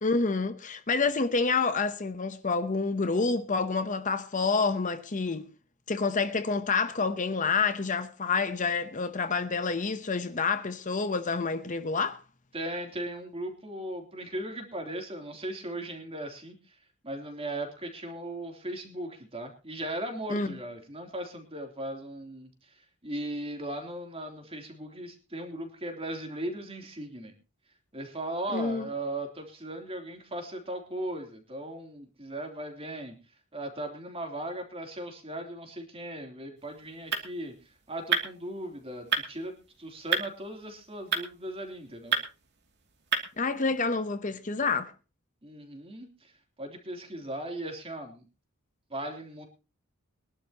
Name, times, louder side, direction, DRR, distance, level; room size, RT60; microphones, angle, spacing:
voice 1, 0.0-5.4 5.9-12.2 20.3-20.5 28.5-28.8 43.4-44.9, left 4 dB, 35° left, 0.9 m, -28 dB
voice 2, 12.5-16.7 17.0-22.7 23.0-27.3 27.9-33.2 33.5-37.5 37.9-42.1 45.4-46.3 46.6-48.2 48.9-49.5, right 1 dB, 25° right, 3.3 m, -38 dB
sound 1, 36.6-43.8, right 6 dB, 50° right, 2.7 m, -34 dB
23.5 x 11.5 x 3.0 m
head